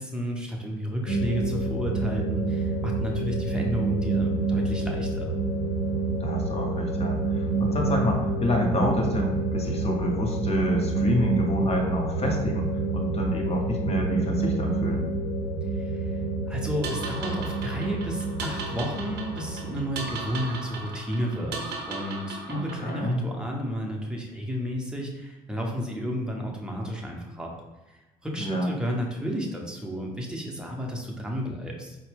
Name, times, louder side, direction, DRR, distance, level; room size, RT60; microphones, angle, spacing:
voice 1, 0.0-5.3 15.7-16.2 16.5-27.5 28.2-32.0, equal, 5° right, -1 dB, 0.9 m, -32 dB
sound 1, 1.1-20.6, right 3 dB, 90° left, 0.7 m, -28 dB
voice 2, 6.2-15.1 22.5-23.2 28.4-28.7, left 1 dB, 30° left, 1 dB, 0.9 m, -28 dB
sound 2, 16.8-23.1, right 3 dB, 55° right, 0.7 m, -37 dB
4.3 x 2.1 x 3.4 m, 1.1 s
hypercardioid pair, 55°, 20 cm